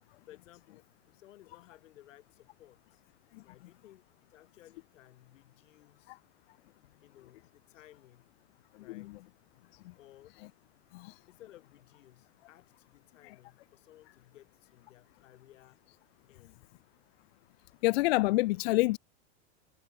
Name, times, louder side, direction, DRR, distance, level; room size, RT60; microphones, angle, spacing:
voice 1, 0.3-3.0 3.4-4.0 4.3-6.2 7.0-8.3 8.8-9.2 10.0-10.4 11.3-15.8 16.3-16.7, left 14 dB, 90° left, 7.2 m, -58 dB
voice 2, 8.9-9.2 10.9-11.1 13.2-13.3 17.8-19.0, left 20 dB, 55° left, 0.5 m, -27 dB
supercardioid pair, 175°, 37 cm